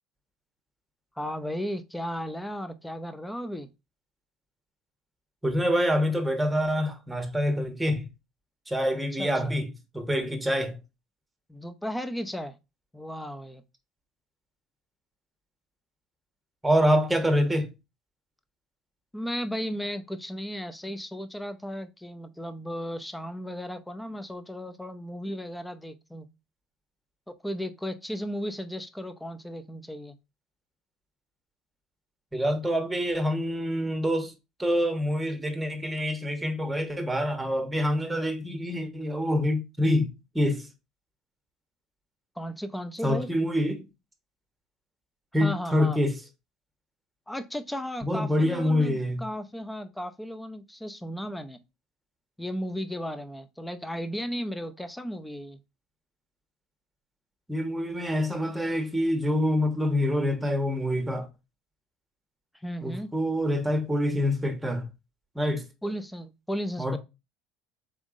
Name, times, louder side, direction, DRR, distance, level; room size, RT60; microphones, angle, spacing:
voice 1, 1.2-3.7 9.2-9.3 11.5-12.5 12.9-13.6 19.1-26.3 27.4-30.2 42.4-43.3 45.4-46.0 47.3-51.6 52.4-55.6 62.6-63.1 65.8-67.0, equal, 5° left, 0.7 m, -35 dB
voice 2, 5.4-8.1 8.7-9.7 9.9-10.8 16.6-17.7 32.3-34.3 34.6-40.7 43.0-43.9 45.3-46.2 48.0-49.2 57.5-61.3 62.8-64.9 65.3-65.7 66.8-67.0, equal, 10° right, 1.3 m, -26 dB
4.1 x 3.5 x 3.7 m
hypercardioid pair, 75°, 0 cm